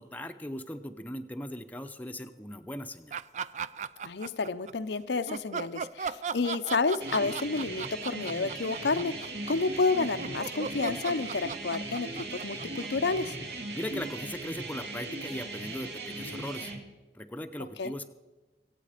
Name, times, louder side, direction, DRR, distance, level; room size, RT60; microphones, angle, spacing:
voice 1, 0.0-3.2 13.7-16.7 17.1-18.1, left 1 dB, 10° left, 6 dB, 0.7 m, -39 dB
sound 1, 3.1-4.7 5.3-13.5, right 6 dB, 40° right, 0.4 m, -37 dB
voice 2, 4.0-13.4 17.8-17.9, left 4 dB, 80° left, 10 dB, 0.7 m, -30 dB
sound 2, 7.0-16.8, right 2 dB, 70° right, 2.4 m, -38 dB
25.0 x 8.4 x 5.0 m, 1.2 s
head